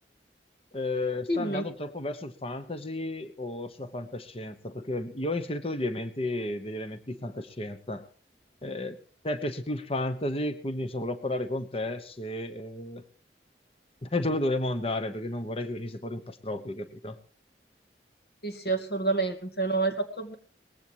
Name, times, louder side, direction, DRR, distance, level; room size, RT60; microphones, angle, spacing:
voice 1, 0.7-8.1 8.6-9.0 9.2-13.0 14.0-17.2, left 1 dB, 35° left, 10 dB, 1.1 m, -32 dB
voice 2, 1.3-1.7 18.4-20.3, right 3 dB, 60° left, 5 dB, 2.4 m, -28 dB
20.0 x 16.0 x 3.1 m, 0.42 s
head